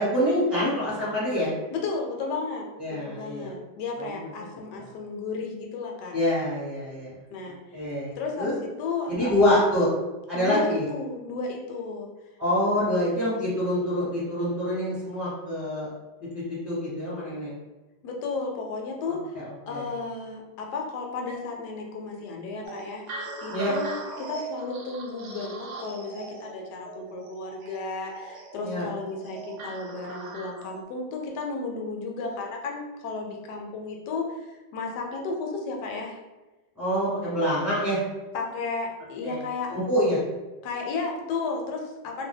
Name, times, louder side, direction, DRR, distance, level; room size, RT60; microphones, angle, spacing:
voice 1, 0.0-1.5 2.8-3.5 4.0-4.2 4.8-4.9 6.1-7.1 7.7-8.5 9.1-9.9 10.3-10.8 12.4-15.9 16.5-17.5 19.3-19.9 23.5-23.7 28.6-28.9 36.8-38.0 39.2-39.4 39.7-40.2, left 1 dB, 15° right, -11 dB, 1.1 m, -26 dB
voice 2, 1.7-6.1 7.3-7.6 8.2-9.4 10.3-12.1 18.0-19.4 19.7-36.2 38.3-39.7 40.6-42.3, left 4 dB, 75° left, 1 dB, 1.1 m, -33 dB
sound 1, 22.6-30.8, right 4 dB, 80° right, 0.6 m, -40 dB
2.7 x 2.2 x 3.8 m, 1.1 s
omnidirectional pair, 1.9 m